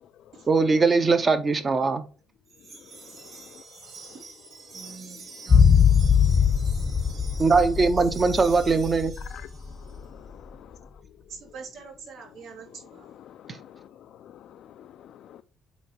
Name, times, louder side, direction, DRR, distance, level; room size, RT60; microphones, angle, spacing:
voice 1, 0.5-2.0 7.4-9.1, right 4 dB, 25° right, 0.7 m, -21 dB
Wind chime, 2.5-10.0, right 4 dB, 60° right, 1.9 m, -46 dB
voice 2, 4.7-5.7 11.3-13.1, right 5 dB, 75° right, 2.6 m, -44 dB
sound 1, 5.5-9.7 10.0-10.1, left 7 dB, 25° left, 0.7 m, -21 dB
voice 3, 10.0-10.7 13.3-13.8 14.2-14.3 14.8-15.4, left 10 dB, 65° left, 0.3 m, -48 dB
8.2 x 3.1 x 4.4 m
cardioid pair, 140°, 0 cm